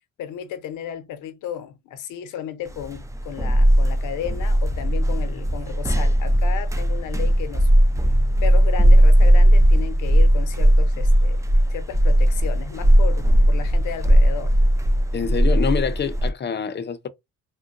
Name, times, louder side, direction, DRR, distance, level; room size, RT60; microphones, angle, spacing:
voice 1, 0.2-7.7 8.4-11.4 11.7-14.5, left 9 dB, 85° left, 0.8 m, -34 dB
sound 1, 2.8-16.3, equal, 10° right, 0.5 m, -17 dB
voice 2, 15.1-17.1, left 6 dB, 35° left, 0.6 m, -26 dB
3.7 x 2.2 x 2.6 m
cardioid pair, 90°, 30 cm